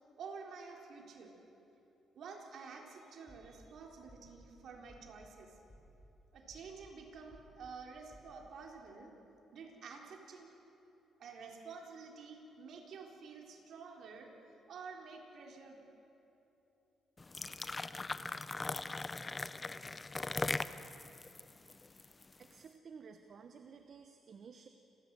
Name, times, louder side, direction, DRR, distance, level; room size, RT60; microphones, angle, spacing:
voice 1, 0.2-1.3 2.2-5.5 6.3-9.1 9.5-10.6 11.2-14.3 14.7-15.8, right 5 dB, 65° right, 1 dB, 3.9 m, -50 dB
sound 1, 3.3-3.7 4.1-4.5 4.9-5.3 5.7-6.1 6.5-6.9 7.3-7.7 8.1-8.3, equal, 5° left, 6.7 m, -59 dB
sound 2, 17.2-22.4, left 3 dB, 25° left, 0.7 m, -40 dB
voice 2, 22.4-24.7, right 6 dB, 50° right, 7 dB, 1.1 m, -54 dB
29.5 x 14.0 x 7.6 m, 2.9 s
cardioid pair, 90°, 0 cm